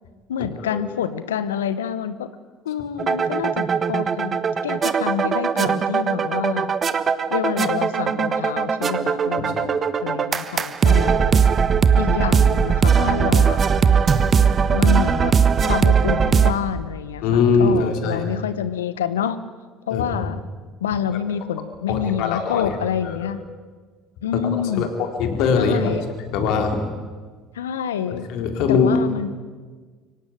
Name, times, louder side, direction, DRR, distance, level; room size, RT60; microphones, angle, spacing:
voice 1, 0.3-2.3 2.6-6.7 7.3-11.2 12.0-13.6 14.7-15.3 15.6-19.4 19.9-20.4 20.8-23.4 24.2-24.9 25.6-26.0 27.5-28.3 28.7-29.3, left 8 dB, 85° left, 13 dB, 1.1 m, -27 dB
sound 1, 3.0-16.5, right 6 dB, 35° right, 1.4 m, -19 dB
voice 2, 10.9-11.4 17.2-18.3 19.9-20.2 21.9-22.8 23.0-23.3 24.7-25.9 26.3-26.8 28.1-28.9, left 5 dB, 65° left, 5 dB, 3.8 m, -22 dB
24.5 x 17.5 x 9.4 m, 1.5 s
hypercardioid pair, 65°, 0 cm